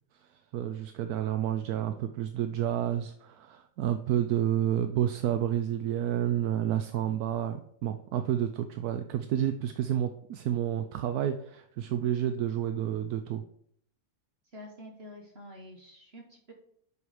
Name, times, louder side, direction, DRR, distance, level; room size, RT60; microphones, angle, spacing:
voice 1, 0.5-13.4, right 10 dB, 75° right, 8 dB, 1.1 m, -30 dB
voice 2, 14.4-16.5, left 1 dB, 45° right, 2 dB, 1.3 m, -48 dB
10.5 x 4.8 x 4.9 m, 0.66 s
omnidirectional pair, 1.7 m